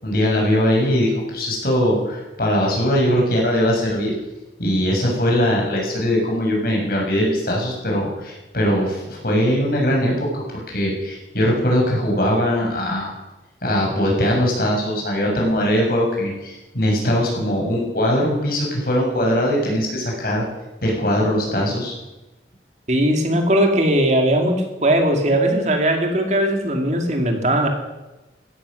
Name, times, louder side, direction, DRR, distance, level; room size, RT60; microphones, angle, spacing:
voice 1, 0.0-4.1 4.6-10.3 10.7-13.1 13.6-20.4 20.8-21.9, equal, 55° left, -1 dB, 6.6 m, -20 dB
voice 2, 22.9-27.7, right 1 dB, 40° right, 3 dB, 2.5 m, -19 dB
16.5 x 13.5 x 6.5 m, 1.0 s
head